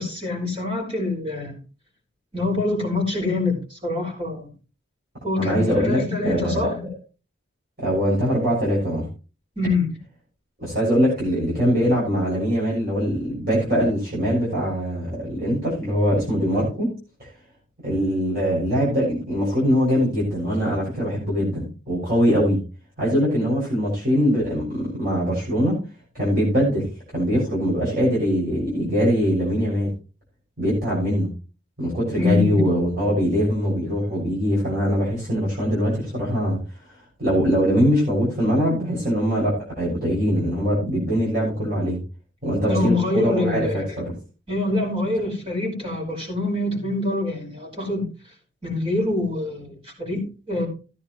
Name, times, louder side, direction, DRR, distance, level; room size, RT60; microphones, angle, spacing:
voice 1, 0.0-1.5 2.3-4.5 5.2-6.9 9.6-9.9 32.1-32.8 42.7-44.0 44.5-48.1 48.6-50.7, left 2 dB, 25° right, 5.4 m, -25 dB
voice 2, 5.4-6.7 7.8-9.1 10.6-16.9 17.2-17.3 17.8-22.6 23.0-25.8 26.1-26.9 27.1-29.9 30.6-31.3 31.8-36.6 37.2-42.0 42.4-44.1, equal, 45° right, 6.8 m, -22 dB
15.5 x 9.8 x 3.2 m
head